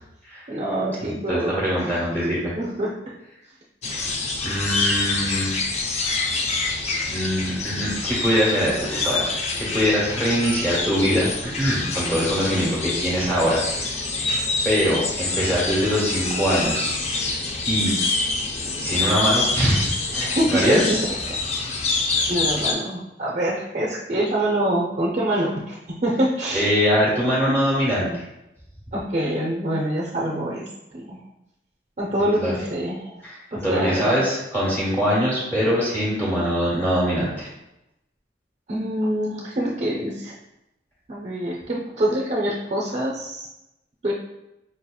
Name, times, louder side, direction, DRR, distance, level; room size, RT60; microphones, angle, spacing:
voice 1, 0.5-2.0 2.6-2.9 20.1-21.0 21.5-21.6 22.3-26.7 27.5-27.6 28.9-30.6 30.9-31.2 32.0-33.1 33.5-34.1 38.7-40.3 41.1-43.5 44.0-44.1, right 1 dB, 40° right, -4 dB, 0.5 m, -25 dB
voice 2, 1.0-2.5 4.4-5.5 7.1-11.3 11.6-13.9 14.6-17.3 17.7-18.0 18.8-21.0 21.6-21.7 26.5-28.2 32.4-32.6 33.2-37.5, equal, 10° left, -8 dB, 1.2 m, -23 dB
sound 1, 3.8-22.7, left 3 dB, 40° left, 0.4 m, -26 dB
4.8 x 2.8 x 2.3 m, 0.91 s
head